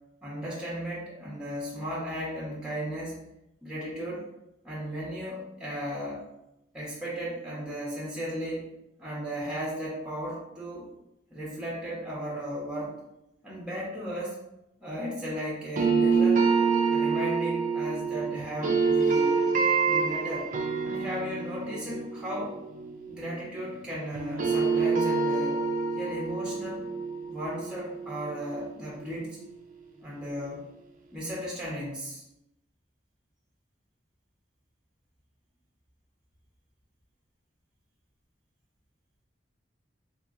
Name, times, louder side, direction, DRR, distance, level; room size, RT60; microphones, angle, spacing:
voice 1, 0.2-3.2 3.6-4.2 4.6-6.2 6.7-8.6 9.0-10.9 11.3-13.0 13.4-14.4 14.8-16.4 16.9-19.4 19.9-20.5 20.8-22.5 23.1-25.6 26.0-26.9 27.3-29.4 30.0-30.6 31.1-32.2, equal, 5° right, -6 dB, 0.8 m, -35 dB
sound 1, 15.8-23.8 24.1-29.1, right 5 dB, 45° right, 0.5 m, -27 dB
3.6 x 2.9 x 2.4 m, 0.88 s
head